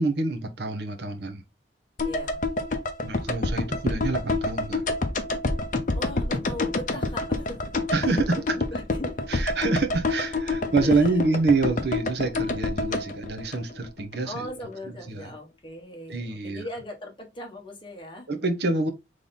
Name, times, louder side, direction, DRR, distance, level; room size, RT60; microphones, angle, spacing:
voice 1, 0.0-1.4 3.0-4.8 7.9-8.6 9.3-14.5 14.9-15.3 16.1-16.6 18.3-18.9, right 3 dB, 65° right, 0.9 m, -26 dB
sound 1, 2.0-14.2 14.4-14.5, left 2 dB, 45° left, 0.6 m, -28 dB
voice 2, 2.0-2.4 5.9-7.8 8.3-8.4 8.7-9.4 10.8-11.2 14.2-18.3, left 1 dB, 25° left, 1.1 m, -39 dB
3.6 x 3.3 x 4.1 m
head